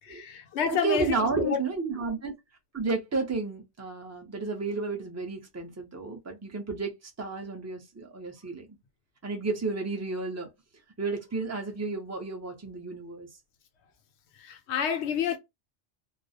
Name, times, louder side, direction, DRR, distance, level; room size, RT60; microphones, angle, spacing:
voice 1, 0.1-1.6 14.4-15.4, left 7 dB, 75° left, 0.9 m, -29 dB
voice 2, 0.7-2.4 2.7-8.7 9.2-10.5 11.0-13.3, right 3 dB, 20° right, 0.5 m, -32 dB
2.4 x 2.0 x 2.6 m
omnidirectional pair, 1.2 m